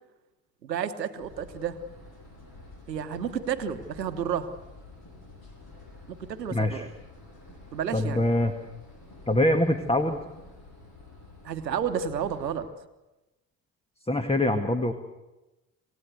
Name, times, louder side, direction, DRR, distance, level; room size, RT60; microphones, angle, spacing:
voice 1, 0.6-1.8 2.9-4.5 6.1-6.9 7.7-8.2 11.4-12.7, right 8 dB, 85° right, 10 dB, 1.2 m, -31 dB
sound 1, 1.2-12.6, left 2 dB, 45° left, 7.9 m, -49 dB
voice 2, 6.5-6.9 7.9-8.5 9.3-10.2 14.1-14.9, left 1 dB, 10° left, 8 dB, 1.8 m, -24 dB
27.5 x 17.0 x 8.1 m, 1.0 s
figure-of-eight pair, 50°, 49 cm